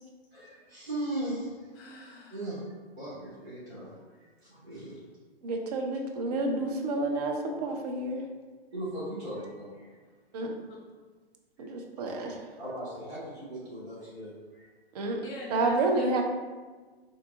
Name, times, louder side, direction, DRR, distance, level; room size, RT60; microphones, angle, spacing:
voice 1, 0.3-1.7 2.3-2.6 3.0-4.0 4.5-5.0 8.7-9.9 11.6-11.7 12.6-14.7, right 1 dB, 90° right, -11 dB, 1.5 m, -38 dB
voice 2, 1.8-2.4 10.7-10.8 15.1-16.2, left 2 dB, 30° left, -3 dB, 0.8 m, -42 dB
voice 3, 5.4-8.2 10.3-10.6 11.7-12.4 14.9-15.2 15.5-16.2, right 2 dB, 40° right, 2 dB, 0.5 m, -29 dB
3.7 x 2.4 x 2.4 m, 1.4 s
hypercardioid pair, 125°, 31 cm